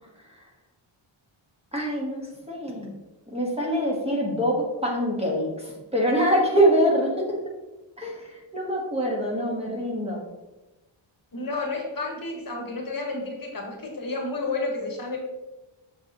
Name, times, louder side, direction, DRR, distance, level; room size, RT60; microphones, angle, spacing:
voice 1, 1.7-2.9 3.3-7.4 8.0-10.2, equal, 10° right, -3 dB, 1.4 m, -25 dB
voice 2, 11.3-15.2, left 3 dB, 45° left, 1 dB, 1.3 m, -31 dB
7.1 x 6.8 x 2.9 m, 1.1 s
wide cardioid pair, 170°, 48 cm